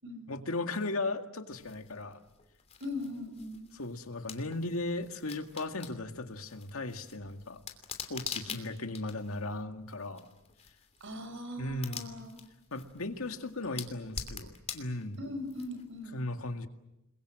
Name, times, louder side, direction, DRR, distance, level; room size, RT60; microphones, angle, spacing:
voice 1, 0.3-2.2 3.7-7.6 8.1-10.3 11.6-12.1 12.7-15.2 16.1-16.7, left 2 dB, 90° left, 6 dB, 2.0 m, -36 dB
sound 1, 1.5-16.1, left 6 dB, 30° left, 2.9 m, -46 dB
voice 2, 2.8-3.6 8.5-8.6 11.0-12.4 13.7-13.8 15.2-16.2, left 1 dB, 65° right, 7 dB, 6.1 m, -40 dB
29.5 x 22.0 x 7.8 m, 0.90 s
head